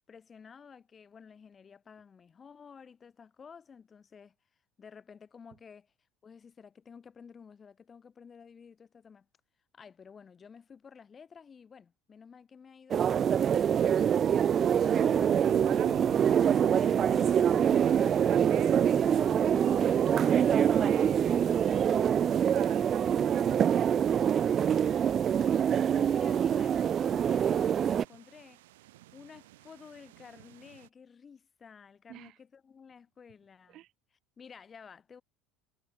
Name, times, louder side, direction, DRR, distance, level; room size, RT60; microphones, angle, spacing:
voice 1, 0.1-4.3 4.8-5.9 6.2-9.3 9.7-13.3 25.6-28.6 29.1-33.8 34.1-35.2, left 6 dB, 30° left, 6.9 m, -52 dB
sound 1, 12.9-28.0, right 8 dB, 40° right, 0.5 m, -25 dB
Fixed-wing aircraft airplane, 14.6-21.6, left 31 dB, 75° left, 3.4 m, -50 dB
voice 2, 14.8-18.9 20.8-21.4 22.5-24.5 32.1-32.3 33.7-33.9, right 14 dB, 60° right, 1.8 m, -44 dB
sound 2, 17.3-30.9, right 17 dB, 85° right, 5.5 m, -59 dB
hypercardioid pair, 80°, 0 cm